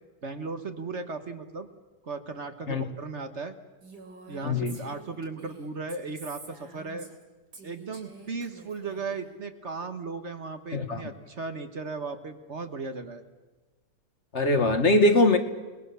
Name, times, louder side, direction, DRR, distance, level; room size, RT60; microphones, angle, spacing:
voice 1, 0.2-1.7 2.0-3.5 4.3-7.1 7.6-13.2, right 4 dB, 45° right, 8 dB, 1.6 m, -36 dB
Female speech woman speaking, 3.8-7.2 7.5-9.3, right 2 dB, 85° right, 3.9 m, -48 dB
voice 2, 4.4-4.8 10.7-11.0 14.3-15.4, left 2 dB, 45° left, 7 dB, 1.7 m, -22 dB
29.5 x 20.0 x 6.9 m, 1.2 s
omnidirectional pair, 1.7 m